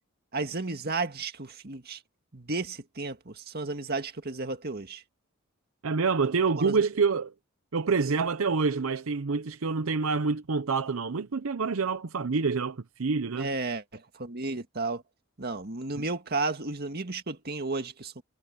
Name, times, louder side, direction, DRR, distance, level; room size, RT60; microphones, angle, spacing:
voice 1, 0.3-2.0 2.3-5.0 6.6-6.8 13.3-15.0 15.4-18.2, right 3 dB, 45° right, 2.0 m, -33 dB
voice 2, 5.8-7.3 7.7-13.5, right 4 dB, 80° right, 0.7 m, -27 dB
head